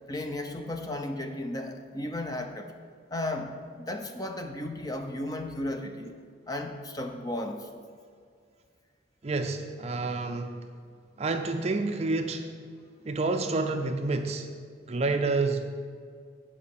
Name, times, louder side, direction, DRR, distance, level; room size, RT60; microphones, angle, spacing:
voice 1, 0.1-2.7 3.1-6.2 6.5-7.7, left 1 dB, 20° left, 4 dB, 0.6 m, -34 dB
voice 2, 9.2-10.6 11.2-12.5 13.0-14.5 14.9-15.7, right 3 dB, 30° right, 6 dB, 0.5 m, -28 dB
8.6 x 5.1 x 7.1 m, 2.1 s
head